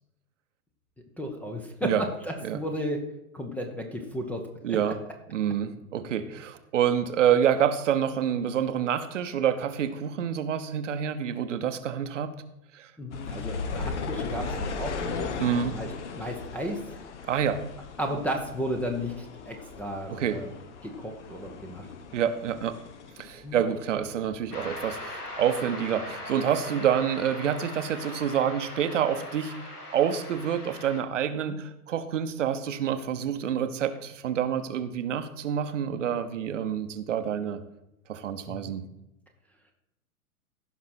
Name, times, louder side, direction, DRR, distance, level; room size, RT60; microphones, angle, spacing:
voice 1, 1.2-3.0 3.3-4.9 13.0-15.9 16.1-16.8 18.0-20.5 20.8-21.9 23.4-23.6 38.5-38.7, equal, 5° left, 4 dB, 0.8 m, -34 dB
voice 2, 4.6-5.0 5.3-12.3 12.7-12.9 15.4-15.8 17.2-17.6 20.1-20.4 22.1-22.8 23.2-37.6 38.1-38.8, right 9 dB, 55° right, 9 dB, 1.0 m, -27 dB
sound 1, 13.1-24.3 24.6-25.7 26.2-26.3, left 4 dB, 50° left, 1.2 m, -37 dB
sound 2, 24.5-31.0, left 2 dB, 85° left, 1.8 m, -40 dB
15.5 x 6.0 x 4.4 m, 0.88 s
figure-of-eight pair, 110°, 45 cm